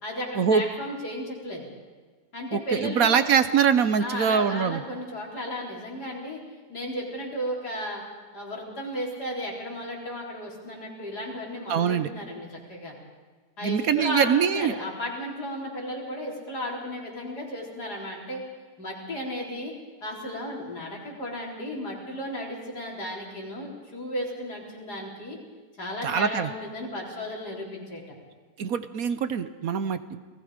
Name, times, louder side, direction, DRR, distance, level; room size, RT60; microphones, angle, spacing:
voice 1, 0.0-1.7 2.3-3.2 4.0-6.4 6.7-8.0 8.3-12.9 13.6-18.4 18.8-19.7 20.0-25.4 25.8-28.0, equal, 75° left, -3 dB, 5.0 m, -34 dB
voice 2, 2.5-4.8 11.7-12.1 13.6-14.7 26.0-26.5 28.6-30.2, right 7 dB, 65° right, 11 dB, 1.3 m, -23 dB
29.0 x 20.0 x 5.1 m, 1.4 s
omnidirectional pair, 1.7 m